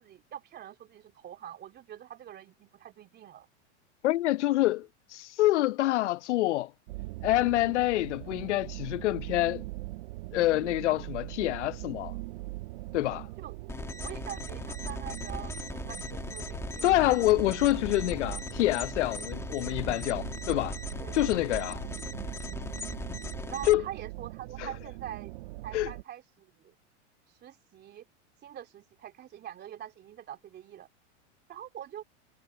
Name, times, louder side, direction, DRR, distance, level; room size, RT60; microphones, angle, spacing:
voice 1, 0.0-3.5 13.4-13.5 14.0-16.9 20.5-21.2 21.4-21.9 23.5-25.3 25.6-26.7 27.4-28.0 28.4-30.9 31.5-32.0, right 11 dB, 30° right, 3.1 m, -44 dB
voice 2, 4.0-6.7 7.2-9.6 10.3-12.1 12.9-13.3 16.8-20.8 21.1-21.8 23.7-23.8 24.6-24.7 25.7-25.9, left 16 dB, 80° left, 0.8 m, -26 dB
sound 1, 6.9-26.0, right 20 dB, 65° right, 2.0 m, -41 dB
sound 2, 13.7-23.7, left 3 dB, 10° left, 1.5 m, -39 dB
supercardioid pair, 135°, 35 cm